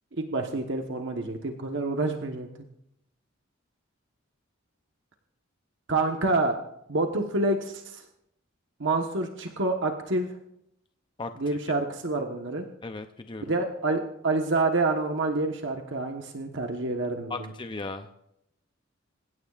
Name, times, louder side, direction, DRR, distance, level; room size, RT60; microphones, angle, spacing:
voice 1, 0.2-2.5 5.9-6.5 6.9-8.0 8.8-10.3 11.4-12.6 13.5-17.3, right 2 dB, 65° right, 3 dB, 1.2 m, -27 dB
voice 2, 11.2-11.6 12.8-13.5 17.3-18.3, left 3 dB, 25° left, 7 dB, 0.6 m, -37 dB
27.5 x 16.0 x 2.5 m, 0.78 s
head